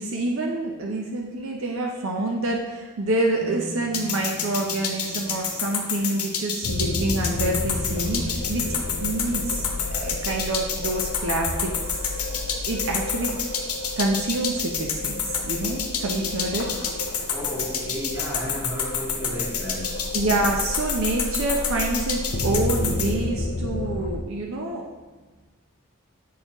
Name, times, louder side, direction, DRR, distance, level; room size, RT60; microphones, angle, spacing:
voice 1, 0.0-12.0 12.7-13.4 14.0-16.7 20.1-24.8, right 2 dB, 65° right, 1 dB, 0.6 m, -27 dB
sound 1, 3.4-10.1, equal, 30° left, 1.5 m, -43 dB
sound 2, 3.9-23.1, left 7 dB, 85° left, 0.9 m, -28 dB
sound 3, 6.6-24.2, left 2 dB, 45° left, 0.4 m, -32 dB
voice 2, 17.3-19.9, equal, 10° right, -8 dB, 1.6 m, -33 dB
8.3 x 4.3 x 2.9 m, 1.3 s
head